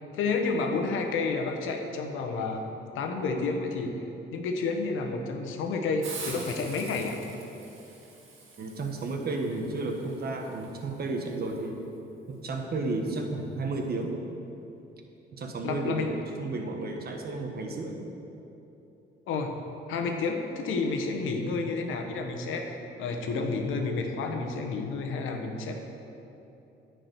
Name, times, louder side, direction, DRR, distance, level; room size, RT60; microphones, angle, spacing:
voice 1, 0.1-2.6 2.9-3.9 4.3-7.2 15.6-16.1 19.3-19.5 19.9-22.7 23.0-25.8, left 4 dB, 90° left, 4 dB, 1.1 m, -30 dB
Hiss, 6.0-11.6, right 3 dB, 85° right, 2.0 m, -45 dB
voice 2, 8.6-11.9 12.3-14.1 15.3-16.1 16.4-18.0, right 3 dB, 50° right, 3 dB, 1.4 m, -32 dB
10.5 x 4.8 x 8.1 m, 3.0 s
cardioid pair, 90°, 20 cm